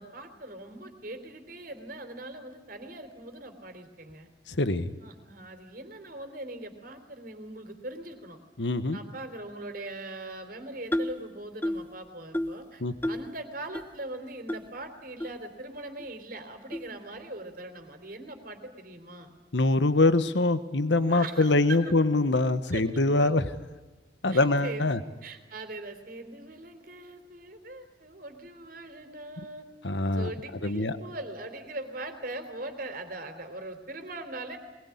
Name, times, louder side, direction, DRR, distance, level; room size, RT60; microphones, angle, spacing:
voice 1, 0.0-4.3 5.0-8.4 8.9-19.3 21.1-21.9 22.7-22.8 23.2-23.4 24.3-24.9 25.2-29.7 30.1-34.6, right 2 dB, 55° right, 7 dB, 3.6 m, -41 dB
voice 2, 4.5-5.0 8.6-9.0 12.8-12.9 19.5-23.5 24.2-25.0 29.8-30.3 30.6-30.9, left 2 dB, 85° left, 12 dB, 1.3 m, -24 dB
sound 1, 10.9-11.2 11.6-11.9 12.3-12.6 13.0-13.3 13.7-13.8 14.5-14.6 15.2-15.3 16.0-16.1 16.7-16.9, left 1 dB, 10° left, 1.2 m, -30 dB
22.5 x 21.5 x 9.8 m, 1.2 s
head